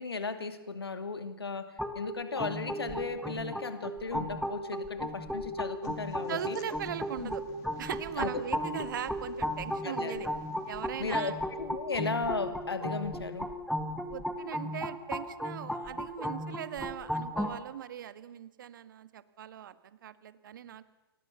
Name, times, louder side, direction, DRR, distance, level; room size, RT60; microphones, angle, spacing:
voice 1, 0.0-6.6 7.2-7.3 8.2-8.4 9.8-10.2 11.0-13.5, left 4 dB, 75° left, 10 dB, 2.5 m, -36 dB
sound 1, 1.8-17.6, equal, ahead, 2.2 m, -35 dB
sound 2, 5.8-11.6, left 8 dB, 25° left, 3.0 m, -53 dB
voice 2, 6.3-7.4 7.8-10.3 10.6-11.3 14.1-20.8, right 10 dB, 55° right, 13 dB, 1.7 m, -40 dB
29.5 x 23.0 x 7.0 m, 1.0 s
figure-of-eight pair, 115°, 13 cm